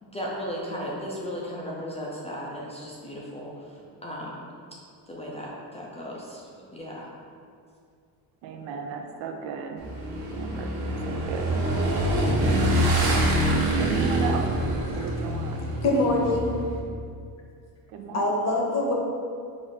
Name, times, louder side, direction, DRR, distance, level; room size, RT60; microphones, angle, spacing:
voice 1, 0.0-4.4 5.1-7.1, equal, 15° left, -5 dB, 0.4 m, -36 dB
voice 2, 8.4-9.8 10.3-10.7 11.0-11.5 13.8-15.7 17.9-18.7, right 4 dB, 85° right, 4 dB, 0.6 m, -35 dB
Motorcycle / Engine, 9.8-16.8, right 1 dB, 50° right, 1.0 m, -25 dB
voice 3, 15.8-16.5 18.1-18.9, left 2 dB, 40° left, -2 dB, 0.8 m, -23 dB
4.9 x 2.5 x 4.0 m, 2.3 s
cardioid pair, 150°, 43 cm